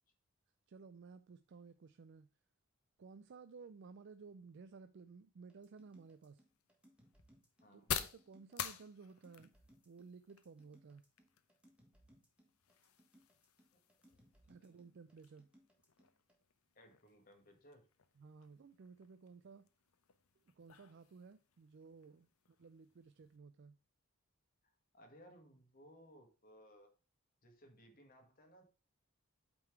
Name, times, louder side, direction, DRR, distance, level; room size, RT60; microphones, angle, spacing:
voice 1, 0.7-2.3 3.0-6.4 7.7-9.5 9.9-11.0 14.5-15.5 18.2-19.7 20.6-23.8, right 5 dB, 55° right, 0.4 m, -56 dB
sound 1, 5.5-16.4, equal, 5° right, 1.5 m, -68 dB
sound 2, 5.8-23.4, left 9 dB, 75° left, 0.7 m, -51 dB
voice 2, 7.6-7.9 13.7-13.8 14.6-14.8 16.7-17.9 24.6-26.9 27.4-28.6, equal, 40° left, 1.7 m, -62 dB
8.7 x 3.9 x 4.6 m
head